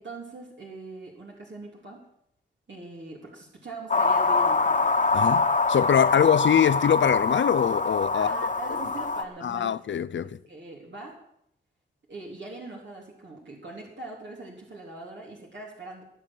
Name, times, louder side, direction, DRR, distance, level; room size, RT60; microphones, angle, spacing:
voice 1, 0.0-2.0 2.7-4.9 6.0-6.3 8.1-9.7 10.2-11.2 12.1-16.0, right 2 dB, 65° right, 3.5 m, -41 dB
sound 1, 3.9-9.2, left 3 dB, 40° left, 1.4 m, -24 dB
voice 2, 5.1-8.3 9.4-10.4, left 8 dB, 70° left, 0.5 m, -23 dB
19.0 x 6.9 x 7.7 m
cardioid pair, 65°, 20 cm